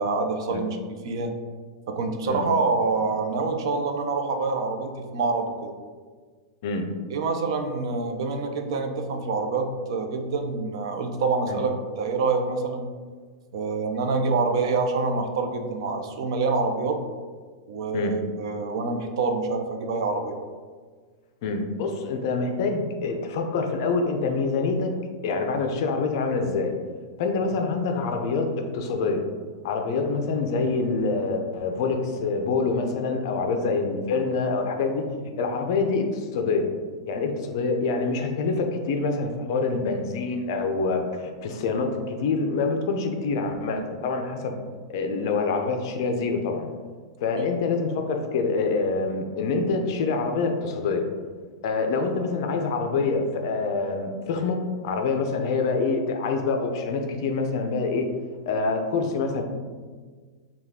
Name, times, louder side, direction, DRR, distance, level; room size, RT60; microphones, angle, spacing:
voice 1, 0.0-1.3 1.9-5.7 7.1-12.9 13.5-17.0 17.7-20.3 47.4-47.5, right 4 dB, 55° right, 5 dB, 0.5 m, -26 dB
voice 2, 21.4-24.9 25.2-26.7 27.2-29.2 29.6-35.1 35.4-36.7 37.1-44.6 44.9-46.7 47.2-51.0 51.6-58.1 58.5-59.4, left 4 dB, 45° left, 4 dB, 0.5 m, -26 dB
5.7 x 2.3 x 3.6 m, 1.5 s
supercardioid pair, 175°, 3 cm